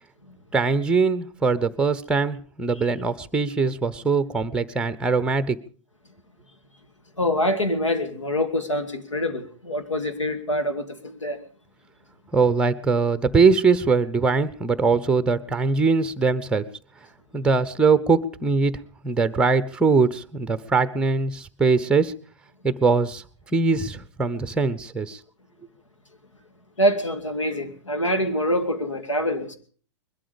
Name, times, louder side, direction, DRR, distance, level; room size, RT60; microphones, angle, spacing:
voice 1, 0.5-5.6 12.3-16.6 17.3-18.7 19.0-22.1 22.6-23.2 23.5-25.2, right 4 dB, 5° right, 0.8 m, -21 dB
voice 2, 7.2-11.4 26.8-29.6, equal, 85° left, 2.3 m, -25 dB
21.0 x 12.5 x 5.1 m
figure-of-eight pair, 110°, 16 cm